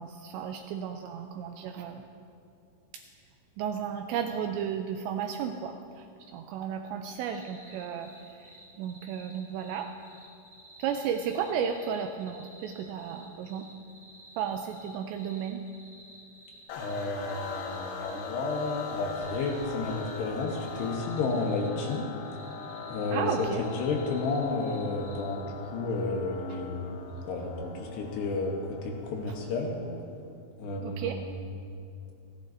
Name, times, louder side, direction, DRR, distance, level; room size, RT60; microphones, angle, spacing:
voice 1, 0.0-2.1 3.6-9.9 10.8-13.7 14.4-15.6 23.1-23.7 26.5-26.6 30.8-31.2, right 8 dB, 85° right, 5 dB, 2.5 m, -34 dB
sound 1, 7.3-25.4, equal, ahead, 2.1 m, -53 dB
sound 2, 16.7-30.1, left 5 dB, 90° left, 3.8 m, -42 dB
voice 2, 16.7-22.1 22.9-23.5 23.7-29.8 30.6-31.3, left 3 dB, 70° left, 0 dB, 2.9 m, -32 dB
29.0 x 11.0 x 2.6 m, 2.5 s
omnidirectional pair, 5.6 m